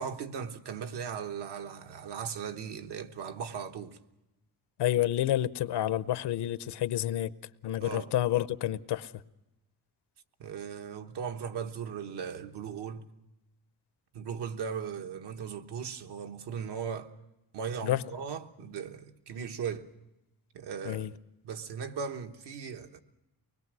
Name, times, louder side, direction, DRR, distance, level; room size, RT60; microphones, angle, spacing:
voice 1, 0.0-4.0 7.8-8.1 10.4-13.1 14.1-17.1 17.5-19.9 20.5-21.1 21.4-23.0, right 7 dB, 85° right, 1.3 m, -38 dB
voice 2, 4.8-7.3 7.6-9.1 17.8-18.0 20.9-21.1, left 13 dB, 85° left, 0.8 m, -29 dB
24.0 x 20.5 x 6.2 m
cardioid pair, 140°, 39 cm